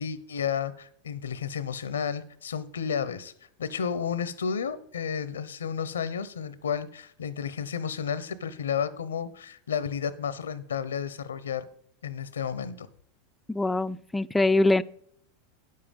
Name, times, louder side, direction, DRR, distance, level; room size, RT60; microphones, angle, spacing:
voice 1, 0.0-3.3 3.6-11.7 12.0-12.9, left 7 dB, 90° left, 17 dB, 0.8 m, -32 dB
voice 2, 13.5-14.8, left 2 dB, 10° left, 15 dB, 0.4 m, -23 dB
9.7 x 7.6 x 5.3 m, 0.64 s
hypercardioid pair, 100°, 0 cm